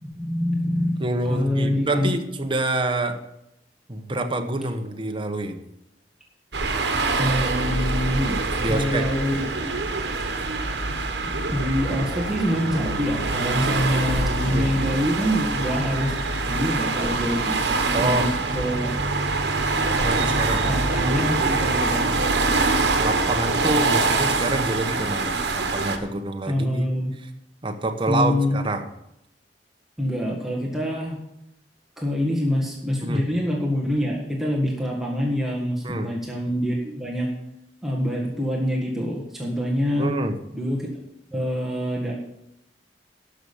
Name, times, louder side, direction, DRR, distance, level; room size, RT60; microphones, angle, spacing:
voice 1, 0.0-2.1 7.2-8.4 8.6-9.7 10.8-16.1 16.5-17.5 18.0-18.9 20.6-22.0 26.5-27.1 28.1-28.6 30.0-31.2 32.0-37.3 37.8-40.1 40.5-40.9 41.3-42.1, equal, ahead, -3 dB, 1.8 m, -25 dB
voice 2, 1.0-3.2 3.9-5.6 8.6-9.1 14.5-14.7 17.9-18.3 20.0-20.6 22.9-26.9 27.6-28.8 33.0-33.2 35.8-36.1 40.0-40.3, right 2 dB, 30° right, 5 dB, 1.0 m, -26 dB
sound 1, 6.5-26.0, right 3 dB, 70° right, 1.3 m, -24 dB
12.0 x 6.4 x 7.1 m, 0.83 s
head